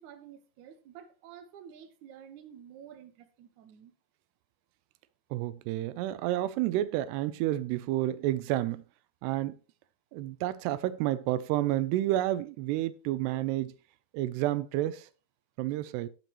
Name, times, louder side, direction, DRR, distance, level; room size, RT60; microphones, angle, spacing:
voice 1, 0.0-3.9, right 9 dB, 60° right, 2.2 m, -50 dB
voice 2, 5.3-8.8 9.2-9.5 10.1-13.7 14.1-15.1 15.6-16.1, right 14 dB, 85° right, 2.7 m, -30 dB
18.0 x 6.8 x 3.0 m
omnidirectional pair, 4.7 m